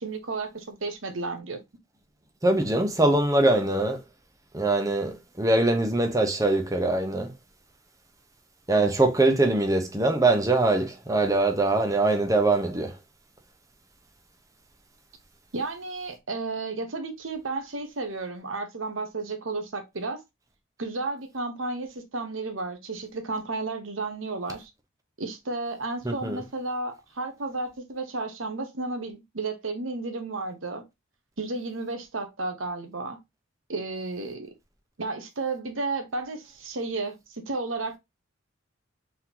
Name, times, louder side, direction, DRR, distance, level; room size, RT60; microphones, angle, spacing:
voice 1, 0.0-1.6 15.5-20.2 20.8-24.7 25.2-30.8 31.4-33.2 33.7-34.5 35.0-38.0, right 3 dB, 80° right, 1.1 m, -32 dB
voice 2, 2.4-4.0 4.5-7.3 8.7-12.9 26.0-26.4, right 2 dB, 15° right, 0.8 m, -23 dB
4.2 x 3.8 x 2.9 m
head